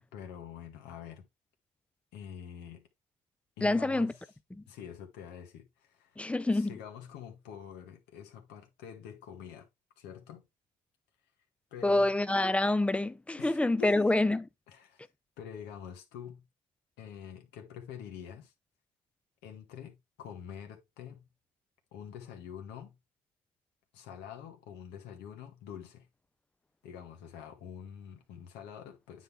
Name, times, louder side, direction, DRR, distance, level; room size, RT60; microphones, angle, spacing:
voice 1, 0.1-1.3 2.1-2.9 3.6-4.2 4.7-6.2 6.5-9.7 10.0-10.4 11.7-12.1 13.4-14.2 14.7-15.0 15.4-16.4 17.0-18.5 19.4-21.3 21.9-22.9 23.9-26.1 26.8-29.2, left 8 dB, 90° left, 1.7 m, -46 dB
voice 2, 3.6-4.1 4.5-4.6 6.2-6.7 11.8-14.4, left 2 dB, 5° left, 0.4 m, -27 dB
9.2 x 4.0 x 3.6 m
cardioid pair, 110°, 17 cm